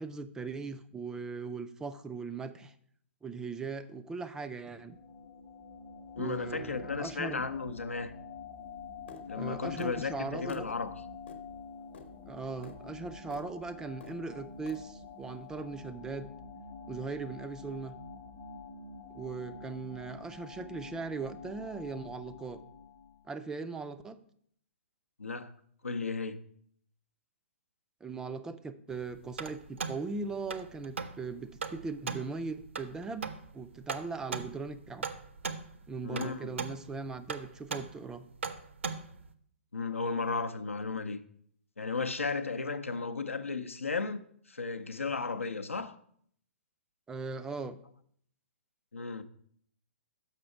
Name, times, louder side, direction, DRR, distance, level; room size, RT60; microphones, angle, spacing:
voice 1, 0.0-2.8 3.2-5.0 6.2-7.4 9.3-10.8 12.3-16.3 16.9-18.0 19.1-22.6 23.3-24.2 28.0-35.1 35.9-38.3 47.1-47.8, right 4 dB, 10° right, 0.3 m, -39 dB
sound 1, 4.5-23.3, left 4 dB, 30° left, 0.8 m, -47 dB
voice 2, 6.2-8.1 9.3-10.9 25.2-25.5 25.8-26.4 36.0-36.6 39.7-41.2 41.8-44.2 44.5-46.0 48.9-49.2, left 4 dB, 80° left, 0.6 m, -34 dB
sound 2, 9.1-9.3 9.8-10.0 10.5-10.7 11.3-11.4 11.9-12.1 12.6-12.8 13.3-13.5 14.0-14.2 14.7-14.8, left 4 dB, 55° left, 0.9 m, -48 dB
sound 3, 28.9-39.3, right 5 dB, 70° right, 0.6 m, -40 dB
6.7 x 5.5 x 4.7 m
figure-of-eight pair, 120°, 7 cm